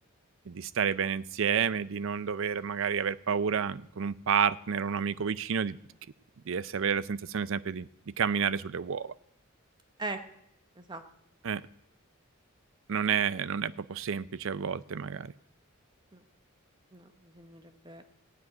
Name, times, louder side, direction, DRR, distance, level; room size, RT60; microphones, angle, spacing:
voice 1, 0.5-5.8 6.5-9.1 11.4-11.6 12.9-15.3, right 7 dB, 65° right, 16 dB, 0.5 m, -30 dB
voice 2, 16.9-18.0, right 3 dB, 20° right, 7 dB, 0.9 m, -40 dB
15.5 x 7.8 x 9.4 m, 0.80 s
head